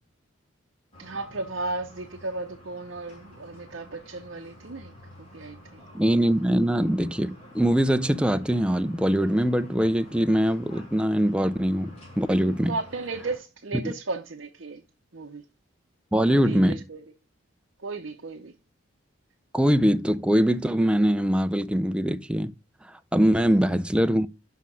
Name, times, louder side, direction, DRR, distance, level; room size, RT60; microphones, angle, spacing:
sound 1, 0.9-13.4, left 1 dB, 30° left, 3.2 m, -49 dB
voice 1, 1.0-4.9 5.3-5.8 12.7-14.8 15.1-15.4 16.3-17.0 17.8-18.5, right 3 dB, 60° right, 0.7 m, -34 dB
voice 2, 5.9-12.7 13.8-13.9 16.1-16.8 19.5-22.5 23.1-24.3, equal, 5° right, 0.4 m, -22 dB
5.7 x 5.6 x 6.1 m
head